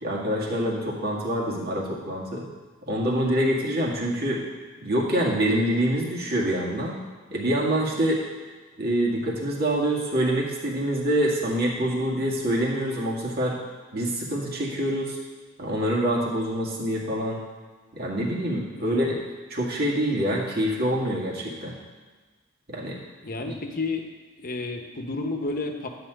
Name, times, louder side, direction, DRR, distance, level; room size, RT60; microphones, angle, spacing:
voice 1, 0.0-2.5 2.9-4.4 4.8-7.0 7.3-8.2 8.8-13.6 13.9-15.2 15.6-17.4 17.9-19.1 19.5-21.7 22.7-23.0, right 1 dB, 50° right, -3 dB, 2.0 m, -25 dB
voice 2, 18.7-19.2 23.2-24.1 24.4-25.9, left 3 dB, 45° left, 4 dB, 1.0 m, -31 dB
11.0 x 4.4 x 7.8 m, 1.4 s
head